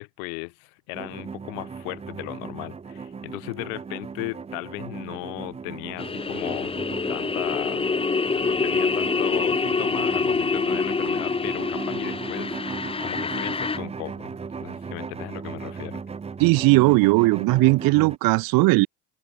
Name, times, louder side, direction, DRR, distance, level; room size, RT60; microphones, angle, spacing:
voice 1, 0.0-6.8 7.1-7.8 8.4-16.0, left 40 dB or more, 85° left, 4.3 m, -36 dB
sound 1, 0.9-18.2, right 5 dB, 15° right, 1.3 m, -37 dB
sound 2, 6.0-13.8, left 4 dB, 15° left, 1.9 m, -26 dB
voice 2, 16.4-18.9, right 23 dB, 55° right, 1.1 m, -18 dB
open air
cardioid pair, 155°, 40 cm